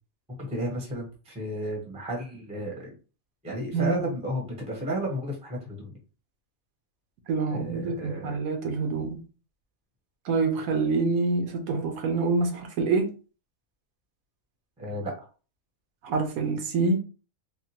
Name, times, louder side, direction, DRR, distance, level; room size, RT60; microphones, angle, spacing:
voice 1, 0.4-2.9 3.4-5.9 7.5-8.4 14.8-15.3, equal, 5° right, 0.7 m, -33 dB
voice 2, 3.7-4.0 7.3-9.2 10.2-13.1 16.0-17.0, right 4 dB, 80° right, 1.2 m, -26 dB
3.6 x 2.3 x 2.8 m
omnidirectional pair, 1.5 m